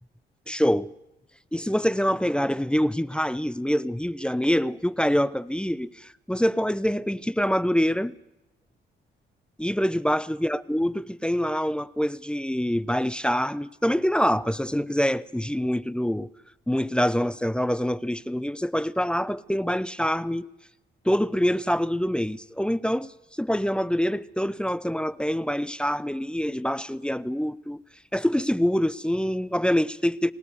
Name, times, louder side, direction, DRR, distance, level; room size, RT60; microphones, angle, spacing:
voice 1, 0.5-0.9 1.5-8.1 9.6-16.3 16.7-20.5 21.0-27.8 28.1-30.3, equal, 5° left, 0.7 m, -25 dB
24.0 x 19.0 x 6.9 m
cardioid pair, 70°, 20 cm